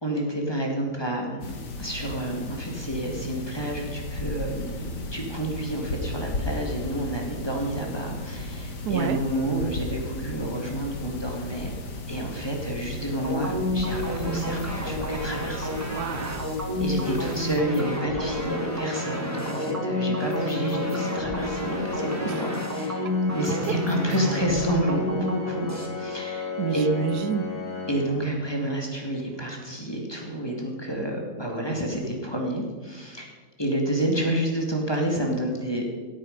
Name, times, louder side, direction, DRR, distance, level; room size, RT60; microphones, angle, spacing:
voice 1, 0.0-11.7 12.1-15.8 16.8-25.7 26.0-26.9 27.9-33.3 33.6-35.9, right 1 dB, 15° left, 0 dB, 2.0 m, -29 dB
sound 1, 1.4-17.6, left 2 dB, 75° left, 2.1 m, -35 dB
voice 2, 8.8-9.2 15.8-16.5 22.3-22.4 23.0-23.2 26.6-27.4 30.5-30.6, right 10 dB, 75° right, 12 dB, 1.1 m, -29 dB
sound 2, 13.2-25.9, equal, 10° right, 1.6 m, -30 dB
Organ, 17.8-28.7, left 4 dB, 50° left, 3.1 m, -34 dB
15.5 x 9.1 x 5.3 m, 1.4 s
omnidirectional pair, 1.8 m